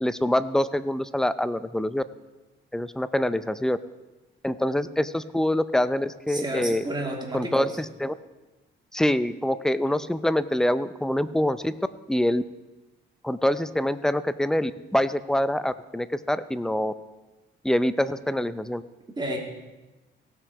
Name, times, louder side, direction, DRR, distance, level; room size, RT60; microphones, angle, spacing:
voice 1, 0.0-2.0 2.7-3.8 4.4-6.8 7.3-7.7 8.0-8.1 8.9-11.7 12.1-12.4 13.2-16.9 17.6-18.8, left 1 dB, 5° left, 14 dB, 0.5 m, -25 dB
voice 2, 6.3-7.8 19.2-19.4, right 1 dB, 20° right, -1 dB, 2.8 m, -31 dB
17.5 x 6.2 x 4.8 m, 1.1 s
cardioid pair, 90°, 20 cm